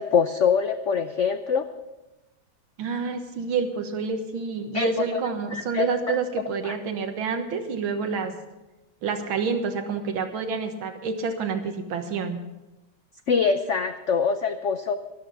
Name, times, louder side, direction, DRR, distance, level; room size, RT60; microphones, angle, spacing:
voice 1, 0.0-1.7 4.7-4.9 5.5-6.2 6.6-6.7 13.3-14.9, left 6 dB, 90° left, 8 dB, 0.6 m, -24 dB
voice 2, 2.8-8.3 9.0-12.4, right 5 dB, 90° right, 6 dB, 2.2 m, -28 dB
13.0 x 12.5 x 5.7 m, 1.0 s
omnidirectional pair, 2.2 m